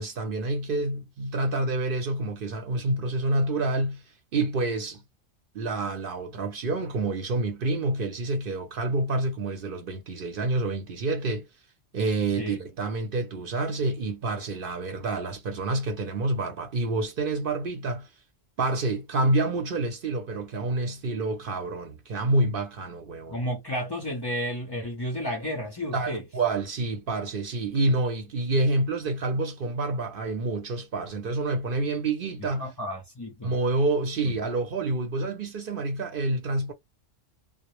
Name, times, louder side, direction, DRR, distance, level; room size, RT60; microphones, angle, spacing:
voice 1, 0.0-4.0 4.3-5.0 5.5-11.5 11.9-18.1 18.6-23.4 25.9-32.7 33.4-36.7, right 2 dB, 55° right, 0.7 m, -28 dB
voice 2, 23.3-26.2 32.4-33.5 34.2-34.3, equal, 35° left, 0.4 m, -32 dB
2.0 x 2.0 x 2.9 m
omnidirectional pair, 1.3 m